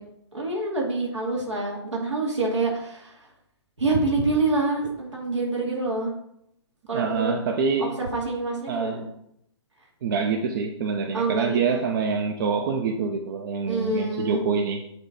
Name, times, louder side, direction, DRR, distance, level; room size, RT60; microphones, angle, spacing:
voice 1, 0.3-3.2 3.8-6.1 6.9-7.3 7.8-9.1 11.1-11.8 13.7-14.5, right 3 dB, 85° right, 2.5 m, -26 dB
voice 2, 6.9-8.0 8.7-9.0 10.0-14.8, right 5 dB, 50° right, 0.7 m, -26 dB
7.8 x 3.2 x 5.3 m
figure-of-eight pair, 130°, 15 cm